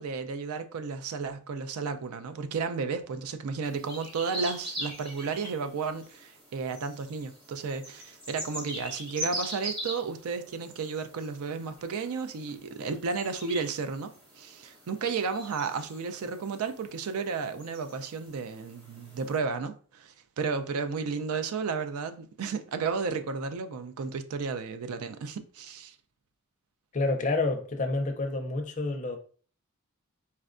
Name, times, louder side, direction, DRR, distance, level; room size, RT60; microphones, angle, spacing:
voice 1, 0.0-25.9, right 5 dB, 80° right, 0.4 m, -33 dB
sound 1, 3.6-19.4, right 1 dB, 20° right, 1.0 m, -42 dB
voice 2, 26.9-29.2, left 2 dB, 35° left, 0.4 m, -28 dB
4.3 x 2.2 x 2.4 m
head